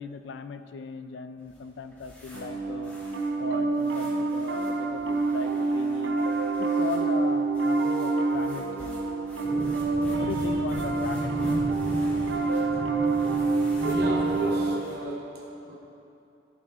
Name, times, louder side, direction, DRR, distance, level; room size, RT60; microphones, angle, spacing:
voice 1, 0.0-2.9 3.4-6.2 6.6-9.0 9.5-9.8 10.2-11.7, left 5 dB, 90° left, 10 dB, 0.4 m, -38 dB
sound 1, 1.4-15.1, equal, 10° left, 1.5 m, -50 dB
Piano, 2.3-14.8, right 3 dB, 90° right, 0.5 m, -27 dB
sound 2, 9.4-14.5, left 1 dB, 30° left, 0.5 m, -36 dB
voice 2, 13.8-15.8, right 2 dB, 60° right, -1 dB, 0.8 m, -34 dB
12.0 x 7.1 x 2.4 m, 2.6 s
head